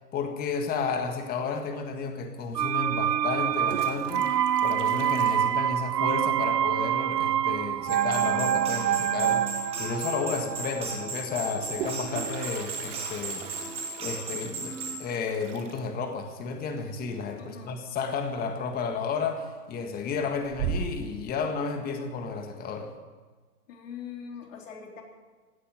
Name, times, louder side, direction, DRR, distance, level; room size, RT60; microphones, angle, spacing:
voice 1, 0.1-13.4 14.0-22.9, left 5 dB, 20° left, 6 dB, 1.8 m, -32 dB
Toilet flush, 2.0-2.1 3.3-6.2 6.4-6.5 6.8-6.9 7.2-7.6 9.3-9.4 9.7-9.8 11.4-18.1 18.4-18.8 19.2-19.8 20.2-21.2, right 7 dB, 50° right, 1.9 m, -39 dB
sound 1, 2.5-12.3 12.6-12.7, right 10 dB, 90° right, 0.6 m, -27 dB
sound 2, 7.9-15.0, right 3 dB, 10° right, 3.0 m, -36 dB
voice 2, 17.4-17.7 23.7-25.0, left 7 dB, 50° left, 2 dB, 3.8 m, -42 dB
17.0 x 9.0 x 9.3 m, 1.4 s
hypercardioid pair, 130°, 47 cm